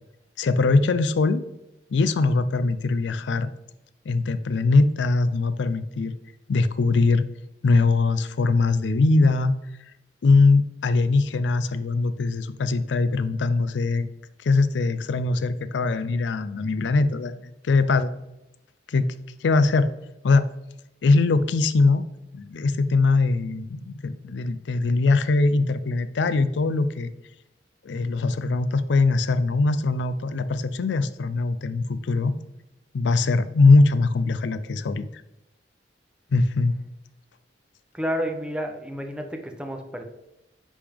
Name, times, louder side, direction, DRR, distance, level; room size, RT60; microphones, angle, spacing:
voice 1, 0.4-1.4 1.9-3.5 4.1-6.1 6.5-7.2 7.6-9.5 10.2-14.1 14.4-18.1 18.9-19.1 19.4-19.9 20.2-20.4 21.0-22.1 22.3-27.1 27.8-32.3 32.9-35.2 36.3-36.7, left 3 dB, 80° left, 13 dB, 0.4 m, -21 dB
voice 2, 37.9-40.1, equal, 5° right, 4 dB, 0.7 m, -30 dB
10.0 x 3.5 x 3.5 m, 0.90 s
head